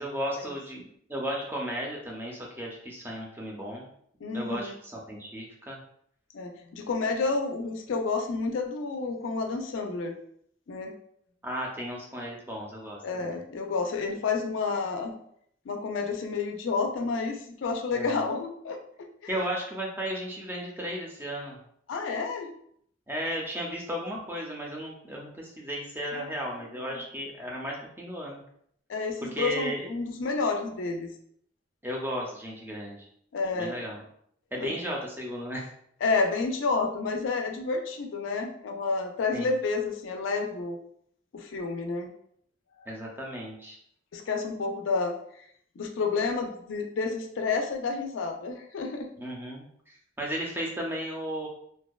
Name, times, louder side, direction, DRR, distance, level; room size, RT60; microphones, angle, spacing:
voice 1, 0.0-3.9 4.3-5.8 11.4-13.4 17.9-18.2 19.3-21.6 23.1-28.4 29.3-29.9 31.8-33.0 33.5-34.0 34.5-35.7 39.3-39.6 42.9-43.8 49.2-51.5, equal, 10° right, -2 dB, 0.4 m, -35 dB
voice 2, 4.2-4.7 6.3-10.1 10.7-10.9 13.0-15.1 15.7-18.8 19.2-19.4 21.9-22.5 26.1-26.3 28.9-31.1 33.3-33.8 34.6-34.7 36.0-40.8 41.3-42.1 44.1-45.1 45.8-49.1, left 4 dB, 90° left, 4 dB, 0.4 m, -30 dB
2.6 x 2.1 x 2.2 m, 0.67 s
head